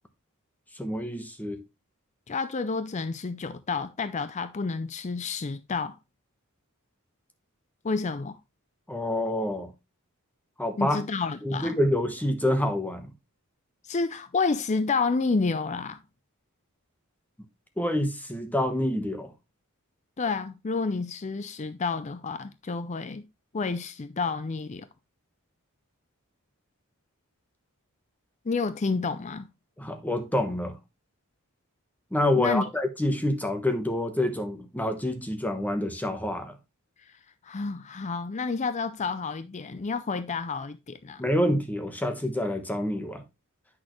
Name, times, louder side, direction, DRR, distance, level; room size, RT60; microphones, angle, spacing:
voice 1, 0.8-1.6 8.9-9.7 10.6-11.0 11.4-13.1 17.8-19.3 29.8-30.7 32.1-36.6 41.2-43.2, left 1 dB, 5° left, 1.0 m, -27 dB
voice 2, 2.3-6.0 7.8-8.4 10.8-11.8 13.8-16.0 20.2-23.3 23.5-24.9 28.4-29.5 32.4-32.7 37.1-37.2 37.4-41.2, left 4 dB, 30° left, 0.5 m, -30 dB
8.6 x 6.3 x 3.0 m
head